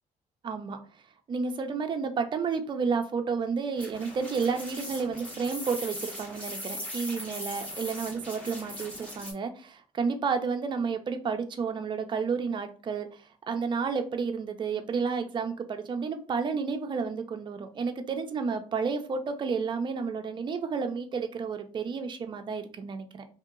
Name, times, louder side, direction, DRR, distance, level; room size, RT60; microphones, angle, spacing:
voice 1, 0.4-0.8 1.3-23.3, right 5 dB, 35° right, 6 dB, 0.5 m, -31 dB
sound 1, 3.8-9.3, equal, 10° left, 1.0 m, -40 dB
2.8 x 2.7 x 3.7 m, 0.38 s
cardioid pair, 135°, 13 cm